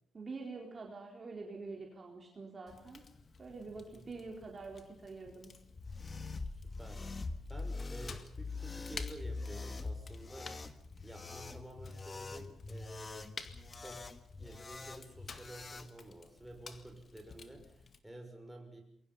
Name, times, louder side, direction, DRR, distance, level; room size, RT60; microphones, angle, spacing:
voice 1, 0.1-3.0 3.4-5.5, right 3 dB, 35° right, 0 dB, 4.1 m, -46 dB
Fire, 2.7-18.0, left 5 dB, 40° left, 2.0 m, -54 dB
sound 1, 5.7-15.9, left 3 dB, 25° left, 1.6 m, -43 dB
voice 2, 6.6-7.2 7.5-10.6 11.0-13.3 13.8-14.1 14.4-18.8, right 1 dB, 5° right, 2 dB, 5.8 m, -51 dB
28.0 x 22.5 x 5.6 m, 0.66 s
cardioid pair, 125°, 0 cm